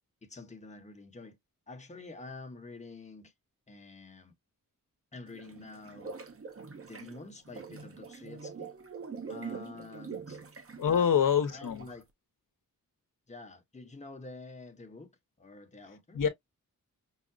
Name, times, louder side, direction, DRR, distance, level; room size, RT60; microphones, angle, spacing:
voice 1, 0.2-1.4 1.7-3.3 3.7-4.4 5.1-6.2 6.8-8.7 9.3-10.4 10.9-11.2 11.5-12.1 13.3-16.2, left 3 dB, 20° left, 0.9 m, -48 dB
sound 1, 5.3-12.0, right 5 dB, 40° right, 0.9 m, -44 dB
voice 2, 10.8-11.9 16.1-16.3, left 8 dB, 65° left, 0.8 m, -25 dB
5.6 x 2.1 x 2.4 m
wide cardioid pair, 85°, 35 cm